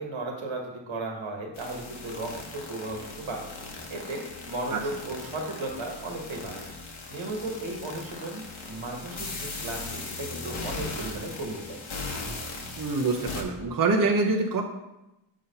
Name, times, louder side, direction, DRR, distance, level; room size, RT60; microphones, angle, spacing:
voice 1, 0.0-3.5 3.9-6.6 7.1-11.8, right 2 dB, 85° right, 1 dB, 1.6 m, -35 dB
Loud Crazy Noisy sounds, 1.6-13.4, left 3 dB, 85° left, 1.2 m, -39 dB
voice 2, 12.8-14.6, right 3 dB, 45° right, 1 dB, 0.7 m, -25 dB
7.3 x 4.1 x 5.4 m, 0.93 s
wide cardioid pair, 160°, 46 cm